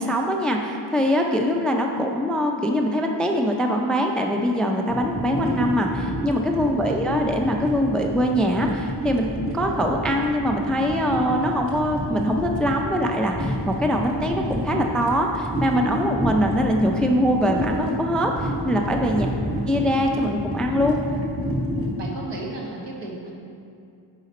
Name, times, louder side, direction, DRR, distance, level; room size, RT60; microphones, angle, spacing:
voice 1, 0.0-19.3 19.7-21.0, equal, ahead, 2 dB, 0.4 m, -23 dB
sound 1, 4.9-21.9, right 1 dB, 30° right, 1.2 m, -29 dB
voice 2, 6.6-7.0 19.3-19.8 22.0-23.3, right 2 dB, 65° right, -2 dB, 1.4 m, -35 dB
8.9 x 5.0 x 4.2 m, 2.5 s
wide cardioid pair, 110°, 46 cm